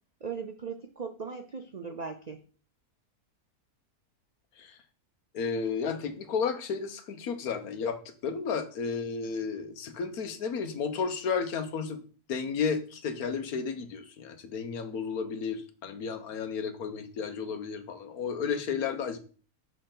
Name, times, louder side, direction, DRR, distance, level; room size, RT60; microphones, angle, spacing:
voice 1, 0.2-2.4, right 5 dB, 60° right, 6 dB, 0.4 m, -38 dB
voice 2, 5.3-12.0 12.3-19.2, left 6 dB, 75° left, 8 dB, 1.4 m, -33 dB
6.9 x 6.6 x 3.9 m, 0.40 s
omnidirectional pair, 1.6 m